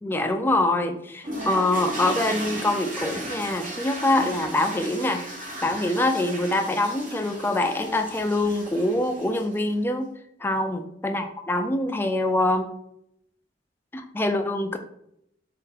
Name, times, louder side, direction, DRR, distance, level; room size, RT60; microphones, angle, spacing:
voice 1, 0.0-5.2 5.6-10.1 10.4-12.7 13.9-14.8, left 1 dB, 10° left, 5 dB, 0.3 m, -24 dB
sound 1, 1.2-9.7, right 1 dB, 45° right, 1.0 m, -36 dB
3.3 x 2.8 x 3.7 m, 0.76 s
head